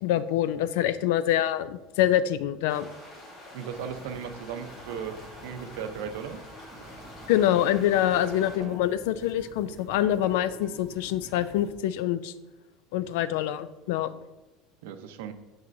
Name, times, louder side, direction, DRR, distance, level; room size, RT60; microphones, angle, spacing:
voice 1, 0.0-2.9 7.3-12.3 12.9-14.1, left 12 dB, 70° left, 14 dB, 0.4 m, -25 dB
sound 1, 2.7-8.6, left 1 dB, 20° left, 1.7 m, -46 dB
voice 2, 3.5-6.4 6.8-7.0 14.8-15.3, right 7 dB, 75° right, 8 dB, 0.7 m, -37 dB
sound 2, 3.7-11.7, right 2 dB, 15° right, 1.4 m, -49 dB
sound 3, 8.1-8.8, right 5 dB, 30° right, 0.7 m, -43 dB
9.4 x 7.3 x 2.7 m, 1.1 s
cardioid pair, 180°, 0 cm